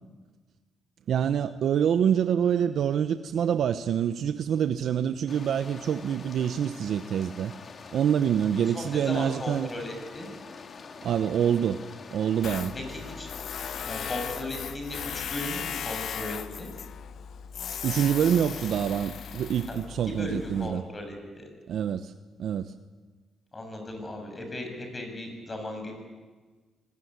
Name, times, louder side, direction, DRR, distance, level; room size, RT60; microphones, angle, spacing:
voice 1, 1.1-7.5 7.9-9.7 11.0-12.7 17.8-20.9 21.7-22.1 22.4-22.7, right 8 dB, 65° right, 10 dB, 0.9 m, -26 dB
sound 1, 5.3-14.5, left 5 dB, 45° left, 1.9 m, -45 dB
voice 2, 8.5-10.3 12.7-13.3 13.8-16.7 19.7-19.8 20.2-21.5 23.5-25.9, left 1 dB, 25° left, 4 dB, 7.6 m, -37 dB
Tools, 12.4-20.7, left 8 dB, 65° left, 1.0 m, -37 dB
24.5 x 19.5 x 9.6 m, 1.4 s
cardioid pair, 90°, 0 cm